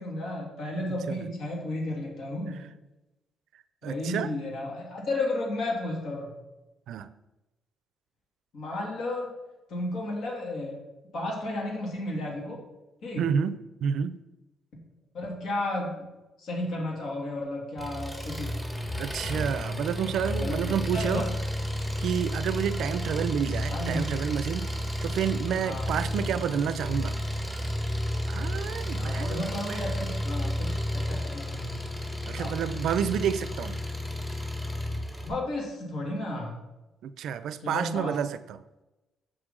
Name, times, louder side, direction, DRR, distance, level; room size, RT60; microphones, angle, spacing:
voice 1, 0.0-2.6 3.8-6.3 8.5-9.3 9.7-10.8 11.1-12.6 13.0-13.2 15.1-16.1 16.4-18.5 20.2-21.3 23.7-24.2 25.6-25.8 26.5-26.7 28.9-31.8 32.3-32.6 35.2-36.6 37.6-38.1, left 1 dB, 70° left, -1 dB, 2.6 m, -33 dB
voice 2, 0.9-1.2 3.8-4.3 6.9-7.1 13.2-14.2 19.0-21.3 22.0-24.7 25.0-27.2 28.3-29.9 32.3-33.8 37.0-38.6, right 8 dB, 75° right, 14 dB, 0.4 m, -30 dB
Engine, 17.8-35.3, left 1 dB, 10° left, 1.5 m, -32 dB
7.7 x 6.2 x 3.7 m, 1.0 s
cardioid pair, 90°, 0 cm